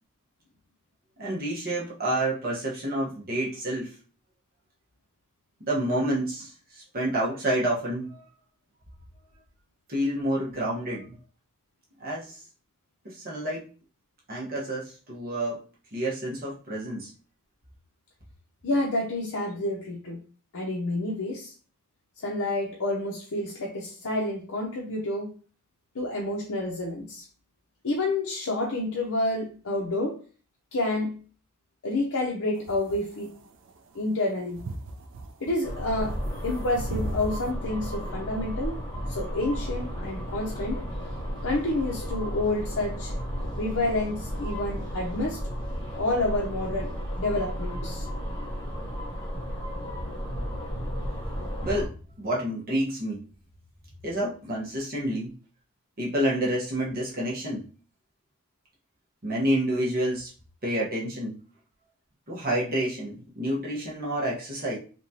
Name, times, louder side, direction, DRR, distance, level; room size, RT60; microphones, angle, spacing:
voice 1, 1.2-3.9 5.7-8.3 9.9-11.1 12.0-12.4 13.0-13.6 14.3-15.6 15.9-17.1 51.6-53.2 54.0-55.3 56.0-57.7 59.2-60.3 60.6-61.4 62.3-64.8, right 1 dB, 40° right, -5 dB, 1.1 m, -29 dB
voice 2, 18.6-20.2 20.5-21.5 22.2-25.3 25.9-27.2 27.8-30.2 30.7-31.2 31.8-33.3 33.9-34.6 35.4-38.8 39.1-40.8 41.4-43.1 43.6-45.4 45.9-48.1, left 2 dB, 70° left, -2 dB, 0.7 m, -29 dB
sound 1, 32.6-37.5, right 2 dB, 55° right, 0.4 m, -37 dB
sound 2, 35.6-51.9, equal, 20° left, 1.0 m, -33 dB
3.5 x 2.9 x 2.7 m, 0.38 s
head